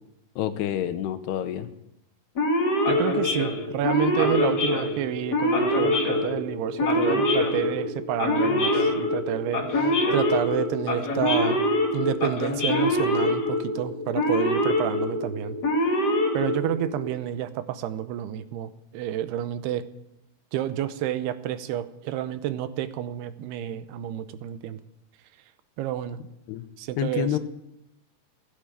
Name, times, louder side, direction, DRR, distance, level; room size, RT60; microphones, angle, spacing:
voice 1, 0.4-1.7 26.5-26.6 27.0-27.4, left 10 dB, 90° left, 10 dB, 3.0 m, -28 dB
Male speech man speaking / Siren, 2.4-17.1, left 1 dB, 40° left, 1.4 m, -24 dB
voice 2, 2.9-11.6 11.9-15.9 16.3-19.8 20.5-24.8 25.8-26.2 26.8-27.3, right 11 dB, 80° right, 12 dB, 2.8 m, -30 dB
16.5 x 9.8 x 9.0 m, 0.86 s
omnidirectional pair, 4.7 m